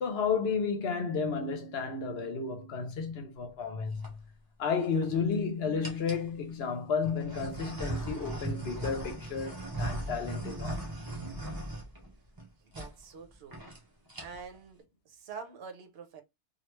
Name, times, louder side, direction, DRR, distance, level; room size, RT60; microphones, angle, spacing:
voice 1, 0.0-4.1 4.6-10.8, left 5 dB, 70° left, 0.9 m, -32 dB
sound 1, 3.7-4.1 4.8-5.4 5.8-6.3 7.0-12.4 12.7-12.9 13.2-13.3 13.5-13.8 14.1-14.6, right 1 dB, 20° right, 0.8 m, -38 dB
voice 2, 12.6-13.7 14.2-16.2, right 5 dB, 65° right, 0.9 m, -46 dB
3.2 x 2.3 x 3.0 m
omnidirectional pair, 1.1 m